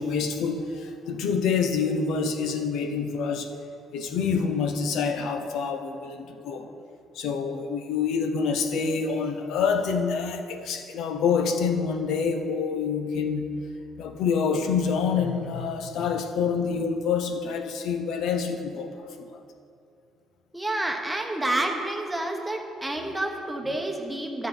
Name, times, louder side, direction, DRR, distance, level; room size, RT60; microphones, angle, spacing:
voice 1, 0.0-3.5 3.9-6.7 7.1-13.5 14.0-19.4, left 5 dB, 75° left, 7 dB, 0.8 m, -27 dB
voice 2, 20.5-24.5, right 1 dB, 5° right, 1 dB, 1.1 m, -29 dB
13.0 x 7.3 x 3.8 m, 2.5 s
cardioid pair, 120°, 0 cm